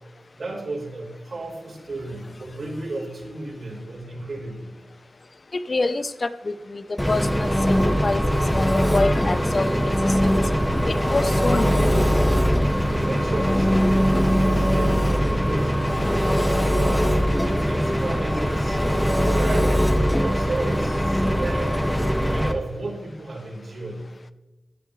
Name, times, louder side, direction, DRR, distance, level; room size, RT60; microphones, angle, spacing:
voice 1, 0.4-4.8 12.9-16.1 17.5-21.9 22.1-24.0, right 2 dB, 70° right, -2 dB, 4.5 m, -33 dB
voice 2, 5.5-10.4 10.8-12.1, left 3 dB, 50° left, 12 dB, 0.8 m, -27 dB
Engine, 7.0-22.5, equal, 10° left, 2.1 m, -21 dB
15.5 x 11.0 x 3.3 m, 1.1 s
cardioid pair, 45°, 0 cm